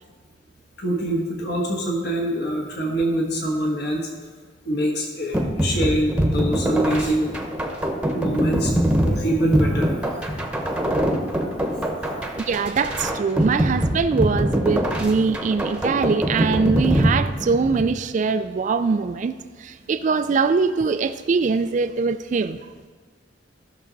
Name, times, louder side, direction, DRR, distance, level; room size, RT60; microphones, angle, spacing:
voice 1, 0.8-4.1 4.6-7.3 8.1-8.7 9.0-10.1 11.2-12.3, right 1 dB, 60° left, 0 dB, 1.4 m, -25 dB
sound 1, 5.3-17.9, equal, 5° right, 0.9 m, -23 dB
voice 2, 12.3-22.6, right 4 dB, 40° right, 10 dB, 0.3 m, -22 dB
15.0 x 6.3 x 3.9 m, 1.5 s
head